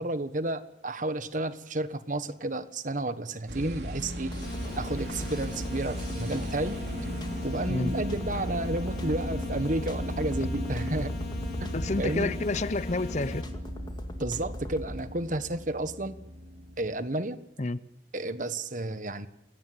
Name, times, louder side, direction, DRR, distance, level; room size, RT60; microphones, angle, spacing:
voice 1, 0.0-4.3 4.7-6.7 7.4-11.1 11.6-12.4 14.2-16.2 16.8-17.4 18.1-19.3, right 2 dB, 45° right, 1.4 m, -31 dB
sound 1, 3.5-16.9, equal, 70° right, 3.5 m, -37 dB
sound 2, 4.3-15.0, equal, 25° left, 2.3 m, -40 dB
sound 3, 4.4-13.4, left 6 dB, 60° left, 4.1 m, -42 dB
voice 2, 11.7-13.5 17.6-17.8, left 2 dB, 40° left, 0.8 m, -29 dB
29.0 x 17.0 x 8.1 m
head